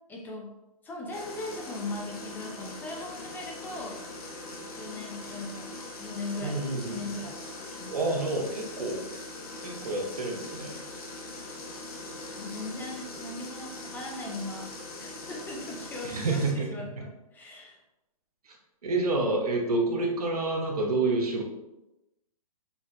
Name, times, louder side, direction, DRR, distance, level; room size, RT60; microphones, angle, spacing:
voice 1, 0.1-0.5 0.8-4.0 4.8-5.7 6.0-6.6 6.8-7.4 7.8-8.0 12.4-16.4 16.7-17.8, left 2 dB, 10° left, -1 dB, 0.5 m, -39 dB
sound 1, 1.1-16.5, left 2 dB, 75° left, 1.0 m, -41 dB
voice 2, 6.4-7.1 7.9-9.1 9.6-10.9 16.0-16.7 18.4-18.6 18.8-21.4, right 2 dB, 85° right, 0 dB, 1.0 m, -28 dB
5.7 x 2.6 x 2.2 m, 0.92 s
hypercardioid pair, 140°, 19 cm